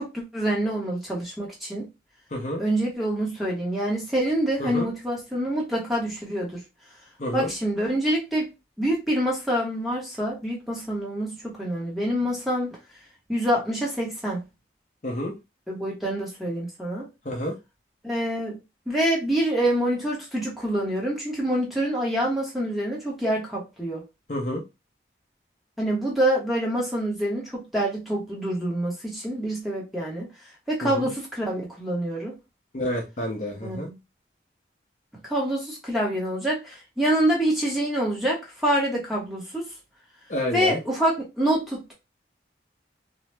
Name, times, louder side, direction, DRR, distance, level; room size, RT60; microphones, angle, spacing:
voice 1, 0.0-1.9 2.6-6.5 7.3-8.5 8.8-12.8 13.3-14.4 15.7-17.1 18.0-18.6 18.9-24.0 25.8-30.3 30.7-32.4 33.6-33.9 35.2-39.7 40.5-41.9, right 1 dB, ahead, 0.8 m, -26 dB
voice 2, 2.3-2.6 4.6-4.9 7.2-7.5 15.0-15.4 17.2-17.6 24.3-24.6 30.8-31.1 32.7-33.9 40.3-40.8, left 1 dB, 40° left, 0.6 m, -29 dB
2.8 x 2.0 x 3.2 m
head